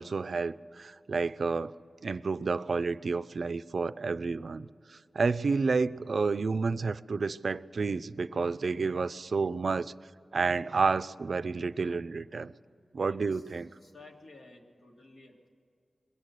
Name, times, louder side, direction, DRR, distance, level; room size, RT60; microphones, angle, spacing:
voice 1, 0.0-1.7 2.0-9.9 10.3-12.5 12.9-13.7, right 4 dB, 70° right, 14 dB, 0.3 m, -30 dB
voice 2, 13.1-15.5, left 2 dB, 85° left, 0 dB, 1.9 m, -54 dB
22.0 x 8.0 x 8.2 m, 2.4 s
wide cardioid pair, 110°, 0 cm